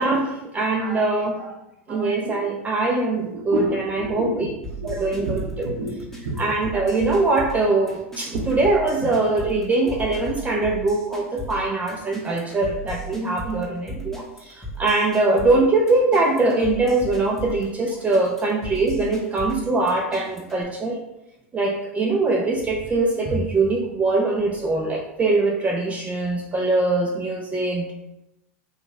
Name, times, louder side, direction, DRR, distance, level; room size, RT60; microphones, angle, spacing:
voice 1, 0.0-1.4 1.9-3.6 3.9-4.5 4.8-5.7 6.4-21.0 21.5-27.9, right 2 dB, 20° right, 0 dB, 0.4 m, -22 dB
voice 2, 0.7-1.5 1.9-2.4 3.2-6.4 8.3-8.5 9.0-9.1, right 2 dB, 80° right, -5 dB, 0.8 m, -32 dB
sound 1, 4.6-20.6, equal, 5° left, 0.8 m, -36 dB
2.9 x 2.3 x 3.8 m, 0.89 s
hypercardioid pair, 100°, 8 cm